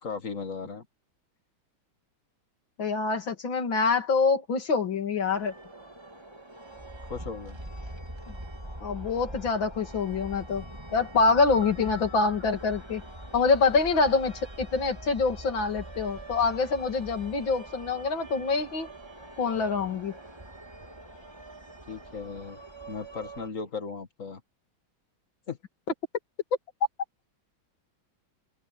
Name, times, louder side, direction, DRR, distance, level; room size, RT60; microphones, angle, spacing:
voice 1, 0.0-0.9 7.1-7.6 21.9-22.6 22.9-24.4 25.5-25.6, left 5 dB, 40° left, 2.3 m, -36 dB
voice 2, 2.8-5.5 8.8-10.6 10.9-13.0 13.3-14.3 14.6-18.9 19.4-20.1, left 4 dB, 65° left, 3.4 m, -25 dB
sound 1, 5.3-23.5, right 1 dB, 10° right, 2.7 m, -43 dB
omnidirectional pair, 2.3 m